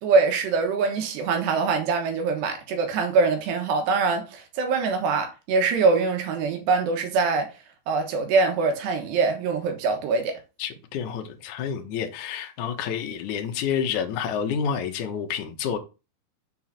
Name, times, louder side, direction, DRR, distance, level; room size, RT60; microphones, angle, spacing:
voice 1, 0.0-7.5 7.9-10.4, right 4 dB, 75° right, 3.3 m, -23 dB
voice 2, 10.6-15.8, left 7 dB, 70° left, 2.0 m, -29 dB
7.0 x 4.7 x 5.7 m
omnidirectional pair, 5.0 m